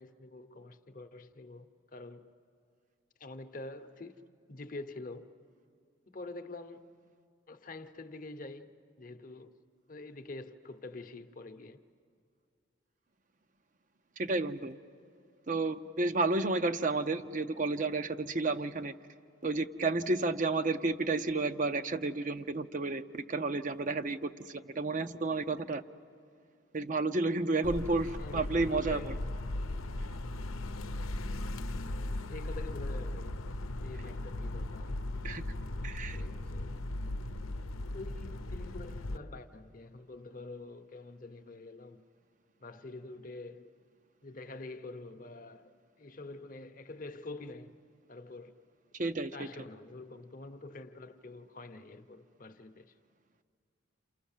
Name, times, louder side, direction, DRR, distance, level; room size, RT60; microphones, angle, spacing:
voice 1, 0.0-2.3 3.2-4.2 4.5-5.3 6.1-7.1 7.5-8.7 9.0-9.6 9.9-11.8 28.2-29.2 31.7-33.4 33.8-35.0 36.1-36.9 37.9-42.0 42.6-43.7 44.2-45.7 46.0-47.8 48.1-48.6 49.2-52.9, left 2 dB, 40° left, 0.9 m, -46 dB
voice 2, 14.2-14.8 15.5-18.9 19.4-25.8 26.7-29.1 35.2-35.5 35.8-36.2 49.0-49.5, right 3 dB, 40° right, 0.6 m, -31 dB
sound 1, 27.6-39.2, left 1 dB, 90° left, 0.8 m, -37 dB
29.0 x 28.5 x 7.3 m
head